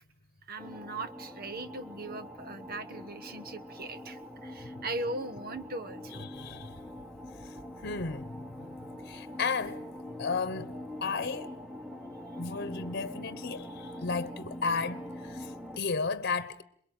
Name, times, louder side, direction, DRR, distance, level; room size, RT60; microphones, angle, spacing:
voice 1, 0.5-6.3, right 2 dB, 50° right, 1.3 m, -39 dB
sound 1, 0.6-15.8, left 1 dB, 5° right, 1.4 m, -44 dB
voice 2, 6.1-6.8 7.4-7.6 7.8-8.7 9.0-9.8 10.2-11.5 12.4-16.6, left 4 dB, 50° left, 1.1 m, -34 dB
27.5 x 22.5 x 9.0 m
head